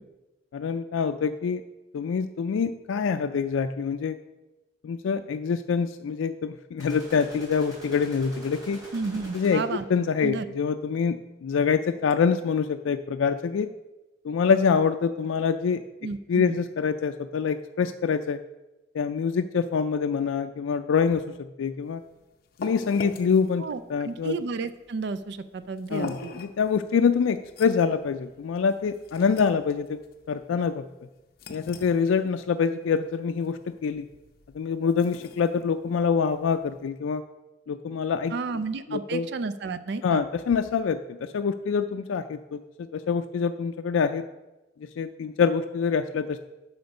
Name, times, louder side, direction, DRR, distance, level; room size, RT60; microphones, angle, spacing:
voice 1, 0.5-1.6 1.9-4.2 4.8-8.8 9.3-9.6 9.9-13.7 14.2-15.8 16.3-18.4 18.9-22.0 22.6-24.4 25.9-30.0 30.3-30.8 31.5-34.1 34.5-37.2 37.7-38.3 38.9-39.3 40.0-44.2 44.8-46.4, left 6 dB, 90° left, 8 dB, 0.3 m, -25 dB
sound 1, 6.8-9.9, equal, 20° right, 3.2 m, -45 dB
voice 2, 8.9-9.9 10.2-10.4 16.0-16.6 23.6-26.3 38.3-40.2, right 4 dB, 60° right, 12 dB, 0.4 m, -32 dB
sound 2, 21.8-36.8, left 3 dB, 50° left, 0.6 m, -45 dB
7.9 x 5.7 x 5.2 m, 1.1 s
head